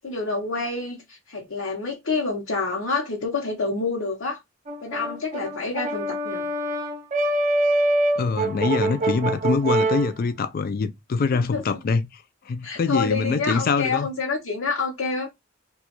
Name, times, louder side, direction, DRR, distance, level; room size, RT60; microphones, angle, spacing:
voice 1, 0.0-4.4 4.8-6.5 11.5-11.6 12.6-15.3, left 4 dB, 80° left, 0.8 m, -28 dB
Brass instrument, 4.7-10.1, right 2 dB, 40° right, 0.5 m, -24 dB
voice 2, 8.2-12.1 12.5-14.1, left 4 dB, 45° left, 0.4 m, -24 dB
2.9 x 2.3 x 2.9 m
head